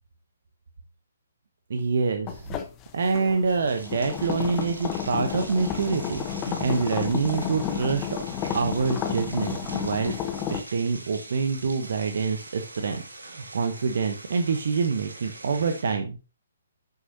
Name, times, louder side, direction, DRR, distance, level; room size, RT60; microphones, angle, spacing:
voice 1, 1.7-2.6 2.9-8.2 8.5-10.1 10.5-16.2, right 4 dB, 60° right, 6 dB, 1.0 m, -26 dB
sound 1, 2.3-10.6, left 8 dB, 20° left, 1.1 m, -32 dB
sound 2, 3.5-15.8, right 2 dB, 80° right, 2.4 m, -43 dB
10.5 x 6.7 x 2.8 m, 0.32 s
figure-of-eight pair, 135°, 0 cm